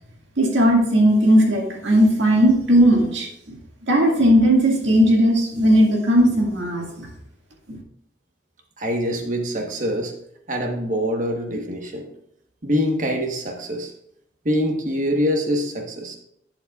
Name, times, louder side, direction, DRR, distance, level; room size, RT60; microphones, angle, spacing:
voice 1, 0.4-3.3 3.9-7.1 7.7-7.8, equal, 85° right, 0 dB, 2.1 m, -17 dB
voice 2, 8.8-10.1 10.5-12.1 12.6-13.9 14.4-16.2, equal, 45° right, 3 dB, 1.3 m, -24 dB
11.5 x 8.0 x 2.4 m, 0.76 s
head